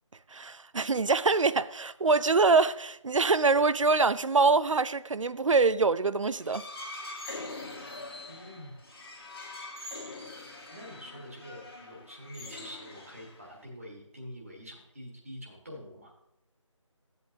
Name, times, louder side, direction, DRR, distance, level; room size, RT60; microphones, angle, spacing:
voice 1, 0.3-6.7, right 4 dB, 70° right, 0.5 m, -24 dB
sound 1, 6.3-13.6, left 2 dB, 45° left, 1.8 m, -43 dB
voice 2, 8.2-8.8 10.7-16.1, equal, 25° right, 1.5 m, -46 dB
13.0 x 8.2 x 2.7 m
figure-of-eight pair, 180°, 17 cm